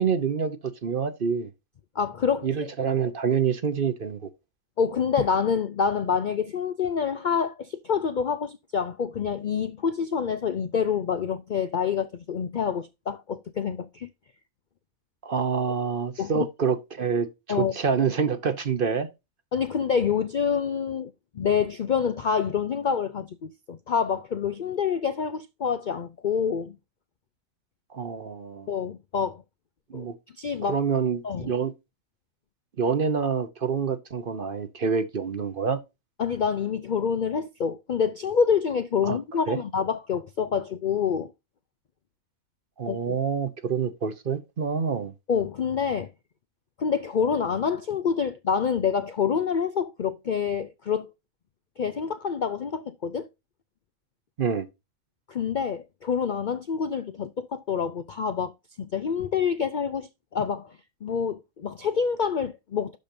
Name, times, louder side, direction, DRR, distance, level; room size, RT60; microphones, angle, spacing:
voice 1, 0.0-1.5 2.4-4.3 15.2-19.1 27.9-28.7 29.9-30.1 30.7-31.7 32.8-35.8 39.1-39.2 39.5-39.6 42.8-45.1 54.4-54.7, right 6 dB, 45° right, 0.9 m, -27 dB
voice 2, 2.0-2.7 4.8-14.1 16.2-16.5 17.5-17.7 19.5-26.8 28.7-29.4 29.9-30.1 30.4-30.8 31.2-31.5 36.2-41.3 42.9-43.2 45.3-46.1 46.8-51.1 51.8-53.3 55.3-58.5 58.8-63.0, left 6 dB, 55° left, 0.5 m, -27 dB
12.0 x 5.1 x 2.6 m
omnidirectional pair, 1.5 m